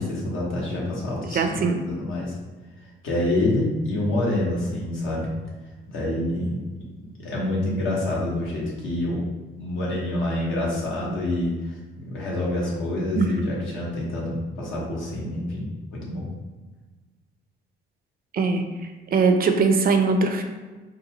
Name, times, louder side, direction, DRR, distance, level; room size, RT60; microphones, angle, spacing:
voice 1, 0.0-1.6 1.9-2.4 3.0-5.3 5.9-6.8 7.2-9.2 9.6-16.3, left 1 dB, 80° left, -4 dB, 1.1 m, -27 dB
voice 2, 1.3-1.8 13.2-13.3 18.3-18.6 19.1-20.4, right 4 dB, 50° right, 6 dB, 0.4 m, -20 dB
4.0 x 2.3 x 2.9 m, 1.3 s
cardioid pair, 90°, 20 cm